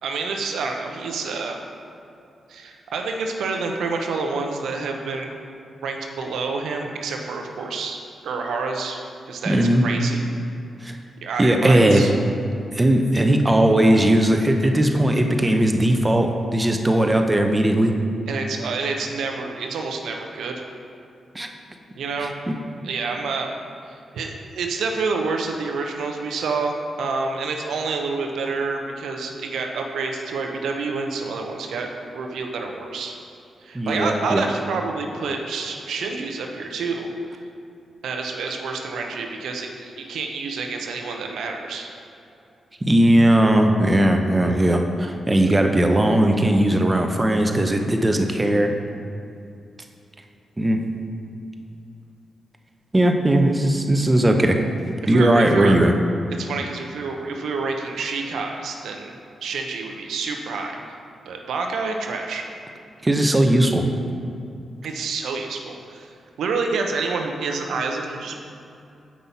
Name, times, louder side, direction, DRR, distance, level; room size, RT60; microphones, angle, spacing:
voice 1, 0.0-1.6 2.5-5.3 5.8-8.0 8.2-9.0 9.3-10.2 11.2-12.1 18.3-20.7 22.0-22.4 22.8-23.5 23.9-33.2 33.6-37.1 38.0-41.9 55.1-55.8 56.4-59.1 59.4-61.0 61.3-62.4 64.8-66.1 66.4-68.4, right 4 dB, 80° right, 3 dB, 0.7 m, -28 dB
voice 2, 9.4-9.8 10.8-11.0 11.4-12.1 12.7-17.9 21.3-21.5 22.5-22.6 33.7-34.4 42.8-48.7 50.6-50.8 52.9-54.6 55.1-55.9 63.0-63.8, right 1 dB, 25° right, 4 dB, 0.9 m, -18 dB
7.4 x 5.5 x 4.2 m, 2.6 s
supercardioid pair, 50°, 0 cm